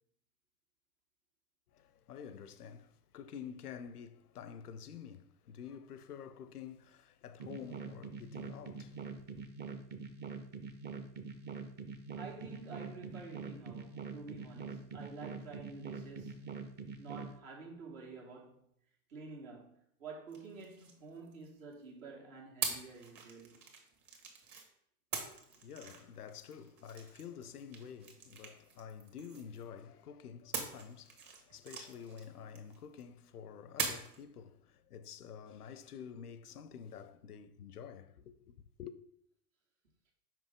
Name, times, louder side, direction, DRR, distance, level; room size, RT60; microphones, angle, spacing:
voice 1, 1.7-9.4 25.2-39.0, left 7 dB, 90° left, 0.5 m, -49 dB
sound 1, 7.4-17.3, right 5 dB, 25° right, 0.5 m, -44 dB
voice 2, 12.1-16.5 17.0-18.7 19.1-23.6, right 4 dB, 65° right, 1.8 m, -49 dB
sound 2, 20.3-21.7 22.6-24.7 25.1-29.8 30.5-33.0 33.8-34.2, right 5 dB, 40° right, 1.5 m, -43 dB
5.8 x 4.9 x 3.5 m
hypercardioid pair, 90°, 44 cm